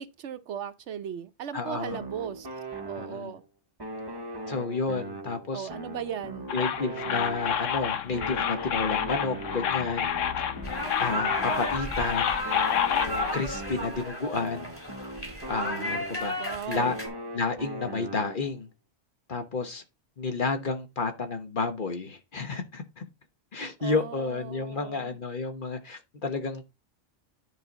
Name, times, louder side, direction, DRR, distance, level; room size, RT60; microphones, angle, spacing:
voice 1, 0.0-2.5 2.8-3.4 5.5-6.5 16.4-17.0 23.8-25.2, right 8 dB, 70° right, 1.0 m, -37 dB
voice 2, 1.5-2.0 3.0-3.3 4.5-5.7 6.5-10.1 11.0-12.4 13.3-14.7 15.5-16.4 16.7-16.9 17.3-18.7 19.3-19.8 20.2-23.0 23.5-26.6, left 4 dB, 45° left, 1.2 m, -31 dB
sound 1, 1.9-3.5 3.8-7.8 8.1-12.0 12.4-16.4 16.8-18.6, right 1 dB, 20° right, 0.9 m, -40 dB
sound 2, 6.5-13.3, left 9 dB, 85° left, 1.2 m, -29 dB
sound 3, 10.6-17.1, equal, 10° left, 2.3 m, -34 dB
10.0 x 5.0 x 4.0 m
omnidirectional pair, 1.3 m